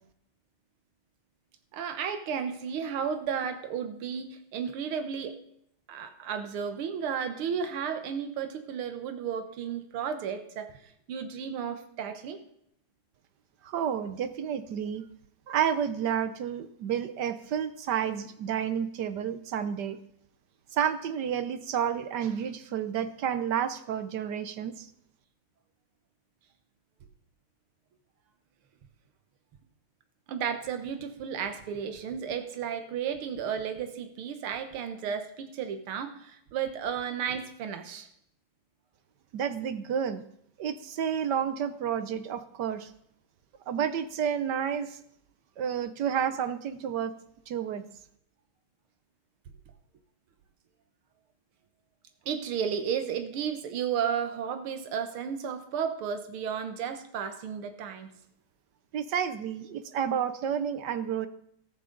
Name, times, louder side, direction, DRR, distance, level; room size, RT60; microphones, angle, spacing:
voice 1, 1.7-5.4 5.9-12.4 30.3-38.1 52.3-58.1, right 7 dB, 85° right, 8 dB, 2.0 m, -33 dB
voice 2, 13.6-15.0 15.5-20.0 20.7-24.9 39.3-40.2 40.6-42.9 43.7-45.0 45.6-47.1 47.5-47.8 58.9-61.3, right 8 dB, 65° right, 11 dB, 1.2 m, -30 dB
14.5 x 14.0 x 3.9 m, 0.71 s
omnidirectional pair, 2.3 m